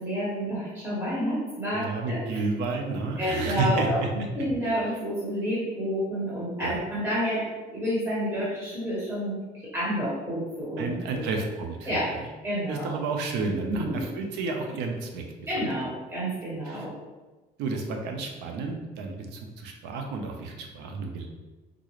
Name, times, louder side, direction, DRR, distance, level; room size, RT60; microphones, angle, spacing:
voice 1, 0.0-2.4 3.2-7.4 7.7-11.2 11.8-12.1 12.4-12.9 13.7-14.1 15.5-16.9, equal, 15° right, -9 dB, 1.3 m, -29 dB
voice 2, 1.7-4.1 4.6-4.8 6.6-6.7 10.8-12.2 12.7-15.2 16.7-16.9 17.6-21.3, right 3 dB, 90° right, 3 dB, 0.6 m, -31 dB
3.7 x 2.4 x 3.1 m, 1.2 s
cardioid pair, 110°, 17 cm